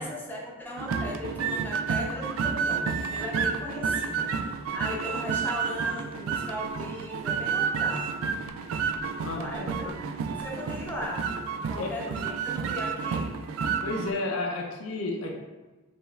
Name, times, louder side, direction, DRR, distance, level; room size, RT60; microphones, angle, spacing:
voice 1, 0.0-8.1 9.3-11.2 11.7-13.3, left 1 dB, 10° left, -3 dB, 0.6 m, -37 dB
sound 1, 0.8-14.1, right 6 dB, 75° right, 0.3 m, -30 dB
voice 2, 9.2-9.7 11.7-11.9 13.8-15.3, left 2 dB, 85° left, 1 dB, 0.6 m, -32 dB
5.1 x 3.0 x 2.5 m, 1.2 s
head